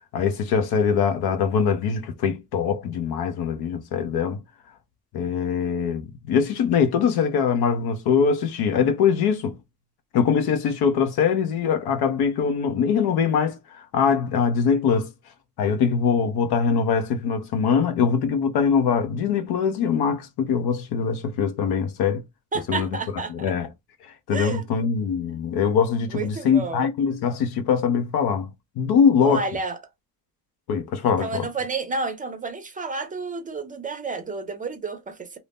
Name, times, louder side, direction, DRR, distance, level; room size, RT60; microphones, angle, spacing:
voice 1, 0.1-4.4 5.1-9.6 10.1-15.1 15.6-22.2 22.7-22.9 23.3-23.7 24.3-28.5 28.8-29.4 30.7-31.5, left 6 dB, 90° left, 0.9 m, -22 dB
voice 2, 22.5-23.5 24.3-24.9 26.1-26.9 29.2-29.8 31.2-35.4, right 4 dB, 20° right, 0.5 m, -30 dB
2.7 x 2.7 x 3.4 m
cardioid pair, 175°, 37 cm